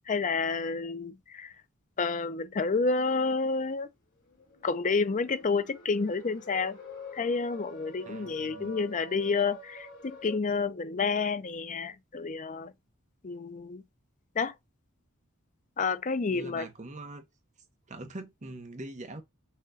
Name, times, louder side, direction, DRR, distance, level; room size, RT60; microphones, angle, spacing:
voice 1, 0.1-1.5 2.0-3.9 4.6-6.8 7.1-12.7 13.2-13.8 14.4-14.5 15.8-16.7, left 4 dB, 35° left, 0.5 m, -29 dB
sound 1, 4.2-10.4, left 1 dB, 55° left, 2.9 m, -47 dB
voice 2, 8.1-8.7 16.3-17.3 17.9-19.2, right 2 dB, 35° right, 0.9 m, -43 dB
5.7 x 3.0 x 2.6 m
head